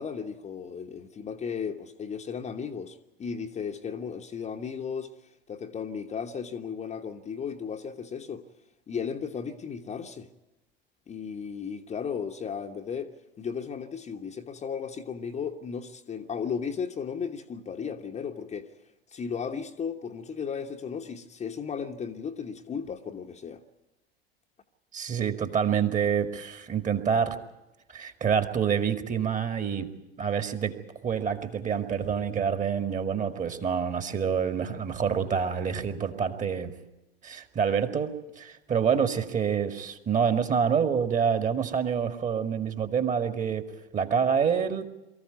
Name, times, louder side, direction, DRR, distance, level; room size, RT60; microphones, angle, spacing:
voice 1, 0.0-8.4 8.9-10.3 11.1-18.7 19.1-23.6, left 6 dB, 20° left, 1.2 m, -35 dB
voice 2, 24.9-27.4 27.9-29.9 30.2-30.8 31.0-36.7 37.2-43.7 43.9-44.8, right 7 dB, 25° right, 2.0 m, -27 dB
23.5 x 15.0 x 9.4 m
figure-of-eight pair, 85°, 31 cm